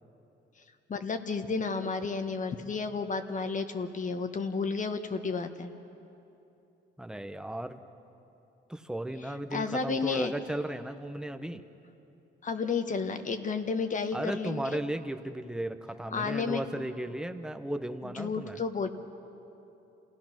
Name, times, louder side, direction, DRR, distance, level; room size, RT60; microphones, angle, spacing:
voice 1, 0.9-5.7 9.2-10.3 12.4-14.8 16.1-16.6 18.0-18.9, left 4 dB, 40° left, 8 dB, 1.4 m, -32 dB
voice 2, 7.0-7.8 8.7-11.6 14.1-18.6, right 1 dB, 5° right, 8 dB, 1.0 m, -35 dB
28.5 x 16.5 x 6.0 m, 2.8 s
cardioid pair, 90°, 20 cm